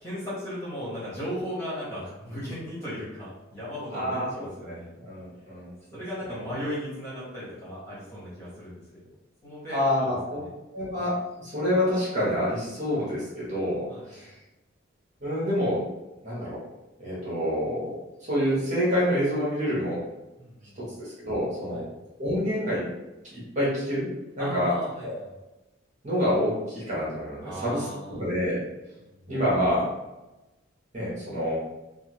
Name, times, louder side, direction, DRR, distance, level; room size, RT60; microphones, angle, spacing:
voice 1, 0.0-4.9 5.9-8.8 9.4-10.5 13.9-14.1 20.4-20.8 21.7-21.9 24.4-25.3 27.4-28.2 29.3-29.4, equal, 15° left, -10 dB, 1.2 m, -36 dB
voice 2, 3.9-6.0 6.3-6.5 9.7-10.4 10.7-13.8 14.1-14.3 15.2-15.8 16.2-16.6 17.0-17.9 18.3-20.0 20.7-21.9 22.2-22.8 23.3-24.1 24.4-25.2 26.0-28.6 29.3-29.9 30.9-31.5, equal, 40° right, -8 dB, 1.3 m, -27 dB
3.3 x 2.0 x 3.1 m, 1.0 s
head